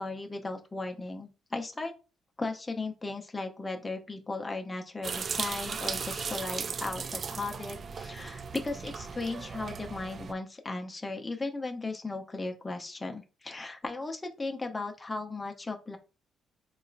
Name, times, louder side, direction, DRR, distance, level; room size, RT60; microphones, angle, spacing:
voice 1, 0.0-1.9 2.4-16.0, left 3 dB, 20° left, 4 dB, 0.6 m, -36 dB
sound 1, 5.0-10.3, right 5 dB, 45° right, 0.3 m, -37 dB
3.6 x 3.0 x 2.5 m, 0.31 s
cardioid pair, 90°, 0 cm